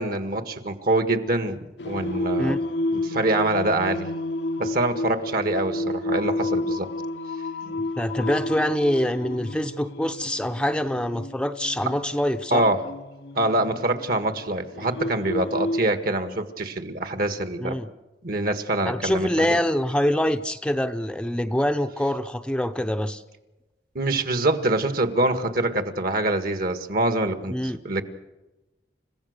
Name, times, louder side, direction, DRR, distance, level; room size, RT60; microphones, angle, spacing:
voice 1, 0.0-2.6 2.9-4.1 4.6-6.9 7.6-7.9 12.5-12.8 13.4-17.8 18.2-19.6 24.0-27.6 27.8-28.0, right 2 dB, 55° right, 9 dB, 1.7 m, -25 dB
Singing, 1.8-15.8, left 1 dB, 75° left, 0.8 m, -31 dB
voice 2, 8.0-12.7 17.6-17.9 18.9-23.2 27.5-27.8, equal, 5° left, 7 dB, 0.7 m, -25 dB
29.5 x 15.5 x 6.6 m, 1.1 s
head